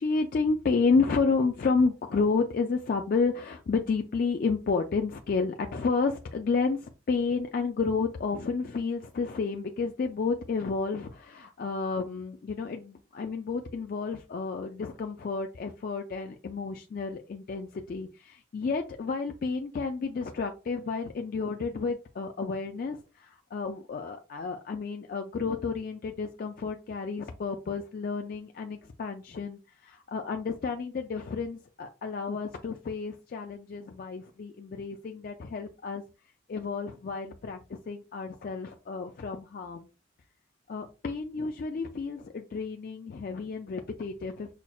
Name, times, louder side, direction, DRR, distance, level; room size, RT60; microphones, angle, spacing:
voice 1, 0.0-36.0 36.5-39.9 40.7-44.5, left 4 dB, 45° left, 4 dB, 0.3 m, -31 dB
5.7 x 2.1 x 2.3 m, 0.30 s
head